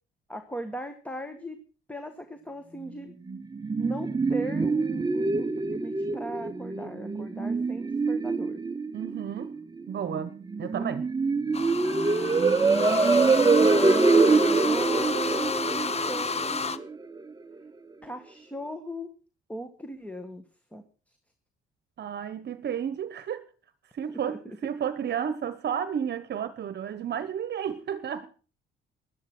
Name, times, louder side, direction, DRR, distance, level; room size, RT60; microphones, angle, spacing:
voice 1, 0.3-1.6 1.9-3.1 3.8-8.6 10.6-10.9 12.0-12.5 12.8-16.8 18.0-19.1 19.5-20.4 20.7-20.8 24.3-24.6, right 1 dB, 5° left, 1.6 m, -38 dB
sound 1, 3.3-17.2, right 3 dB, 20° right, 1.0 m, -25 dB
voice 2, 8.9-9.6 9.9-11.1 22.0-23.5 23.9-28.3, right 8 dB, 60° right, 1.1 m, -32 dB
sound 2, 11.5-16.8, left 5 dB, 30° left, 1.1 m, -31 dB
13.0 x 11.5 x 6.1 m
cardioid pair, 90°, 20 cm